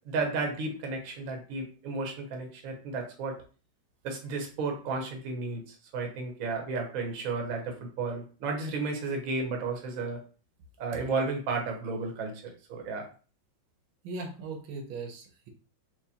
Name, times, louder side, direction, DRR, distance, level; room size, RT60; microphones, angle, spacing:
voice 1, 0.1-3.4 4.0-5.6 5.9-10.2 10.8-13.0, right 3 dB, 55° right, 2 dB, 1.0 m, -33 dB
voice 2, 14.0-15.5, right 3 dB, 75° right, 3 dB, 1.5 m, -39 dB
4.5 x 2.5 x 2.8 m, 0.37 s
omnidirectional pair, 2.2 m